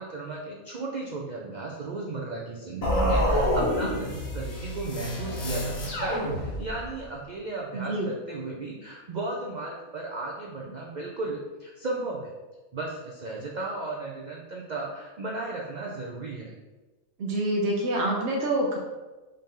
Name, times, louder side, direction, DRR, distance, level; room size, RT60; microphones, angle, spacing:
voice 1, 0.0-12.3 12.7-16.5, right 2 dB, 85° right, -2 dB, 0.4 m, -35 dB
sound 1, 2.8-6.9, equal, 65° left, 1.4 m, -27 dB
voice 2, 7.7-8.1 17.2-18.8, right 1 dB, 60° right, -1 dB, 0.8 m, -26 dB
5.1 x 2.7 x 3.7 m, 1.2 s
omnidirectional pair, 1.5 m